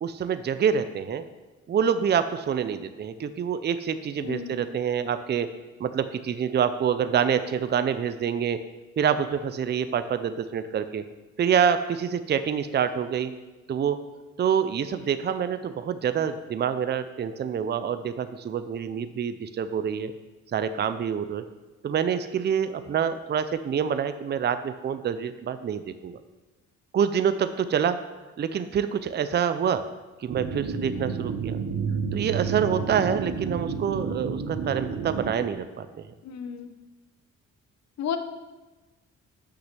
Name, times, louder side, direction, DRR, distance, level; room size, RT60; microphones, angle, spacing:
voice 1, 0.0-1.2 1.7-5.5 5.8-8.6 9.0-11.0 11.4-13.3 13.7-14.0 14.4-20.1 20.5-21.4 21.8-26.2 26.9-28.0 28.4-29.8 30.2-31.6 32.1-36.1, right 7 dB, 35° right, 11 dB, 0.5 m, -26 dB
voice 2, 4.2-4.6 36.2-36.7 38.0-38.2, left 7 dB, 60° left, 8 dB, 0.9 m, -32 dB
sound 1, 30.3-35.3, right 5 dB, 60° right, 1.0 m, -30 dB
6.2 x 5.9 x 5.8 m, 1.2 s
cardioid pair, 90°, 30 cm